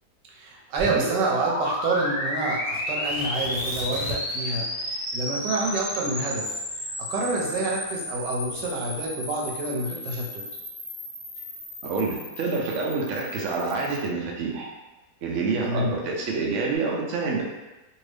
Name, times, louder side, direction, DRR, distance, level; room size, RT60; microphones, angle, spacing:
voice 1, 0.3-10.4 15.6-15.9, right 2 dB, 85° right, -2 dB, 1.3 m, -28 dB
sound 1, 0.8-14.1, left 1 dB, 20° left, 0.8 m, -32 dB
Tearing, 3.1-4.5 4.8-4.9 5.4-7.8 8.5-8.9, left 2 dB, 45° right, 1.3 m, -38 dB
voice 2, 11.8-14.7 15.2-17.4, right 4 dB, 65° right, -2 dB, 0.8 m, -27 dB
2.7 x 2.7 x 3.2 m, 1.1 s
omnidirectional pair, 1.8 m